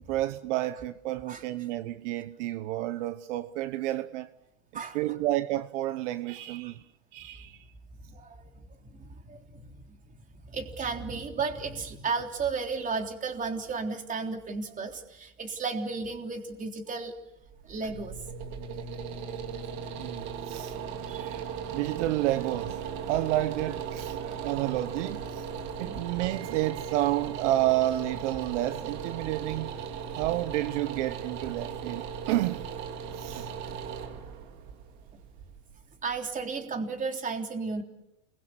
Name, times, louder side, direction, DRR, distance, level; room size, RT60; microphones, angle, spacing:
voice 1, 0.0-4.3 4.7-6.8 7.1-7.7 20.0-20.7 21.2-21.4 21.7-22.8 23.1-25.4 25.8-29.7 30.2-32.7 33.2-33.5, right 15 dB, 60° right, 1.2 m, -30 dB
voice 2, 4.7-5.2 6.6-6.7 8.0-17.2 17.6-18.2 19.8-19.9 21.1-21.4 25.8-26.0 36.0-37.8, right 4 dB, 20° right, 3.5 m, -34 dB
sound 1, 17.4-36.4, right 7 dB, 45° right, 3.3 m, -37 dB
28.5 x 22.0 x 8.1 m
supercardioid pair, 130°, 40 cm